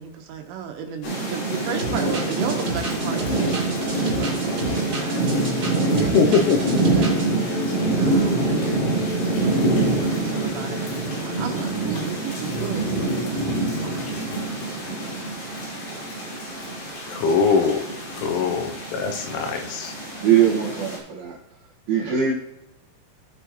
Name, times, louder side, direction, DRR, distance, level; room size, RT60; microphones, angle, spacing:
voice 1, 0.0-7.6 8.0-13.5 13.8-14.3 14.6-15.0, right 8 dB, 80° right, 4 dB, 3.6 m, -35 dB
sound 1, 1.0-21.0, right 2 dB, 65° left, 5.5 m, -25 dB
sound 2, 1.8-7.3, right 3 dB, 35° right, 3.4 m, -33 dB
sound 3, 3.2-12.0, left 7 dB, 40° left, 5.4 m, -39 dB
voice 2, 5.9-6.8 17.1-17.8 18.1-19.9, left 5 dB, 80° left, 5 dB, 3.0 m, -22 dB
voice 3, 20.2-21.4 21.9-22.3, right 9 dB, 65° right, -2 dB, 2.7 m, -21 dB
17.5 x 6.3 x 3.0 m, 0.93 s
omnidirectional pair, 5.9 m